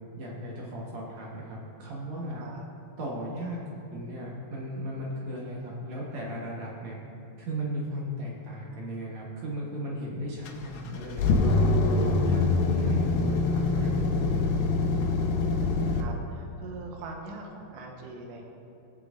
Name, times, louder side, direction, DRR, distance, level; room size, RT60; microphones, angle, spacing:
voice 1, 0.2-2.5 3.0-7.0 7.4-11.6 12.0-14.5, equal, 65° right, -4 dB, 1.8 m, -36 dB
sound 1, 10.5-16.0, left 3 dB, 85° left, 2.0 m, -24 dB
voice 2, 15.1-18.4, right 3 dB, 90° right, 1 dB, 3.3 m, -43 dB
19.0 x 7.6 x 2.6 m, 2.8 s
omnidirectional pair, 4.9 m